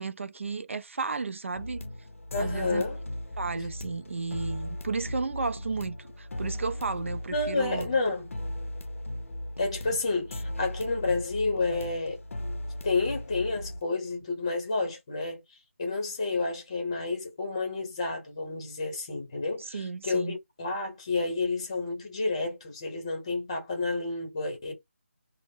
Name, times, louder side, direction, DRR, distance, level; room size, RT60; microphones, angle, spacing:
voice 1, 0.0-1.8 2.4-2.8 3.4-7.9 19.7-20.4, right 4 dB, 65° right, 0.4 m, -33 dB
sound 1, 1.5-13.8, left 1 dB, 70° left, 0.5 m, -37 dB
voice 2, 2.3-3.0 7.3-8.4 9.6-12.2 12.8-15.4 15.8-24.7, left 3 dB, 25° left, 0.8 m, -30 dB
2.0 x 2.0 x 3.5 m
figure-of-eight pair, 175°, 7 cm